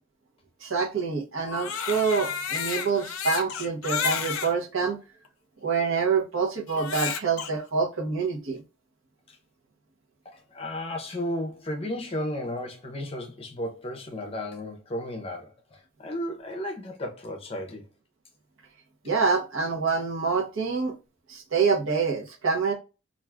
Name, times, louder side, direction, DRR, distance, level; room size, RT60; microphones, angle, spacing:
voice 1, 0.6-5.0 5.6-8.6 19.0-21.0 21.3-22.7, right 5 dB, 70° right, 0.8 m, -26 dB
Crying sobbing, 1.4-4.5 5.3-5.4 6.7-7.5, left 7 dB, 90° left, 0.4 m, -31 dB
voice 2, 10.2-17.9, left 1 dB, 30° left, 0.6 m, -34 dB
2.4 x 2.3 x 3.3 m
head